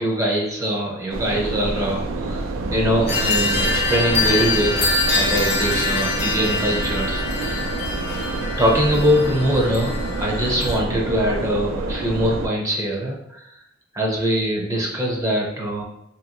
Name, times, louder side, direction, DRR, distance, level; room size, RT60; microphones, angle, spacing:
voice 1, 0.0-7.6 8.6-13.5 13.9-15.8, equal, 15° right, -2 dB, 0.5 m, -23 dB
sound 1, 1.1-12.5, right 2 dB, 85° right, 0.3 m, -28 dB
sound 2, 3.1-10.8, left 3 dB, 55° left, 0.6 m, -24 dB
2.8 x 2.7 x 2.6 m, 0.81 s
head